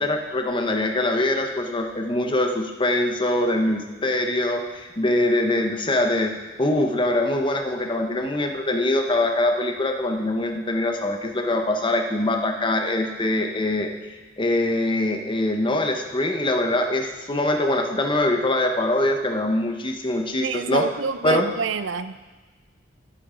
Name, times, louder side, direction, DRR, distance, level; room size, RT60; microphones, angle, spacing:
voice 1, 0.0-13.9 14.4-20.9 21.2-21.5, left 1 dB, 25° left, 3 dB, 0.9 m, -23 dB
voice 2, 20.4-22.2, right 5 dB, 75° right, 13 dB, 0.4 m, -27 dB
9.8 x 8.6 x 5.1 m, 1.3 s
head